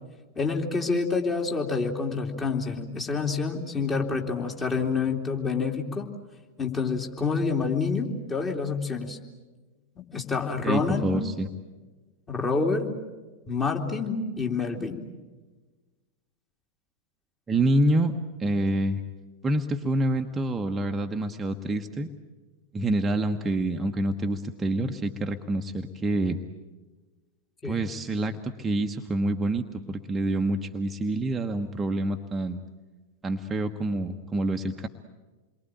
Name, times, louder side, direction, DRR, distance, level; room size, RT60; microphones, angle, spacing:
voice 1, 0.3-6.1 6.6-9.2 10.0-11.1 12.3-12.9 13.5-15.0 27.6-27.8, left 4 dB, 20° left, 2 dB, 3.2 m, -27 dB
voice 2, 10.6-11.5 17.5-18.1 18.4-19.0 19.4-22.1 22.7-26.4 27.6-32.6 33.2-34.9, right 1 dB, 15° right, 4 dB, 1.2 m, -27 dB
28.5 x 23.0 x 9.0 m, 1.3 s
figure-of-eight pair, 90°, 0 cm